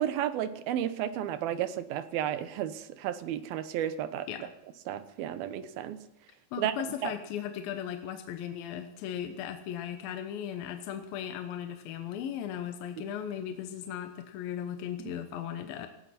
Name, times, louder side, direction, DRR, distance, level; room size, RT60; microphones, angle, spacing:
voice 1, 0.0-4.3 4.9-6.0 6.6-6.7 7.0-7.1, right 11 dB, 85° right, 11 dB, 2.9 m, -32 dB
voice 2, 6.5-15.9, left 9 dB, 80° left, 6 dB, 2.8 m, -37 dB
18.5 x 17.5 x 4.3 m, 0.90 s
omnidirectional pair, 4.2 m